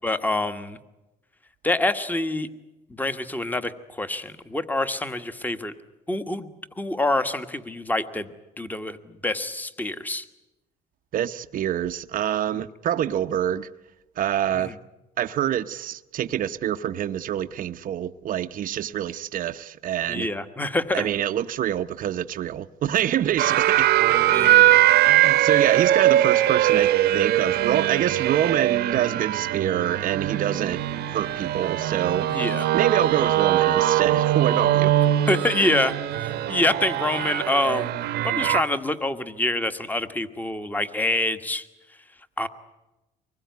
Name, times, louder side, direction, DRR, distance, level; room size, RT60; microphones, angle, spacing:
voice 1, 0.0-0.8 1.6-2.5 2.9-5.7 6.1-8.3 8.6-10.2 14.5-14.7 20.1-21.1 24.3-24.8 32.3-32.7 35.3-35.9 36.5-37.9 38.2-41.7 42.4-42.5, left 2 dB, 10° left, 1.5 m, -26 dB
voice 2, 11.1-13.7 14.2-14.7 15.2-20.3 20.9-23.9 24.8-30.8 31.1-32.3 32.7-34.9, right 10 dB, 55° right, 0.8 m, -26 dB
sound 1, 23.4-38.6, right 13 dB, 75° right, 1.1 m, -21 dB
25.0 x 21.0 x 9.5 m
cardioid pair, 110°, 17 cm